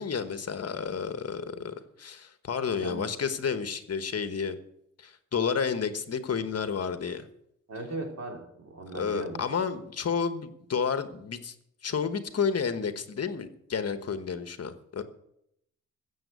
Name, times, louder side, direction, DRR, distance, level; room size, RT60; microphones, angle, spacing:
voice 1, 0.0-4.6 5.0-7.3 8.9-11.5 11.8-15.0, left 6 dB, 55° left, 10 dB, 1.2 m, -31 dB
voice 2, 2.7-3.1 7.7-9.4, right 2 dB, 60° right, 2 dB, 3.4 m, -38 dB
15.0 x 7.4 x 8.1 m, 0.76 s
wide cardioid pair, 140°, 30 cm